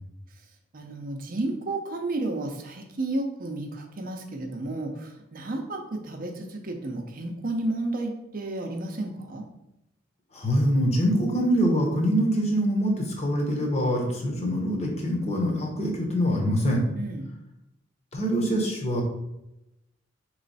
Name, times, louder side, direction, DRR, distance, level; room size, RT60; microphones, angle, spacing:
voice 1, 0.7-9.4 16.9-17.3, right 2 dB, 45° right, 3 dB, 0.6 m, -32 dB
voice 2, 10.3-16.8 18.1-19.0, equal, 30° left, -1 dB, 0.9 m, -24 dB
4.2 x 3.1 x 4.0 m, 0.89 s
head